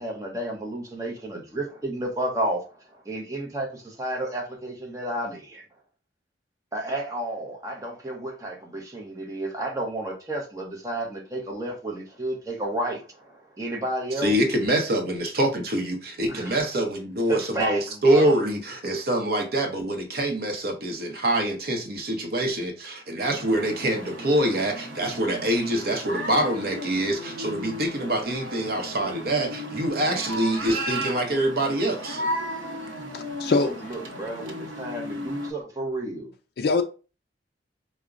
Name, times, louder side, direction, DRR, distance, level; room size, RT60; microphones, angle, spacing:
voice 1, 0.0-5.6 6.7-14.3 16.3-16.6 17.3-18.4 33.6-36.3, right 1 dB, 15° right, 0.7 m, -32 dB
voice 2, 14.2-32.2, right 1 dB, 55° right, 0.7 m, -25 dB
sound 1, 23.3-35.5, equal, 85° right, 0.8 m, -35 dB
voice 3, 33.1-33.9 36.6-36.8, left 3 dB, 55° left, 0.3 m, -24 dB
4.8 x 2.1 x 2.4 m
head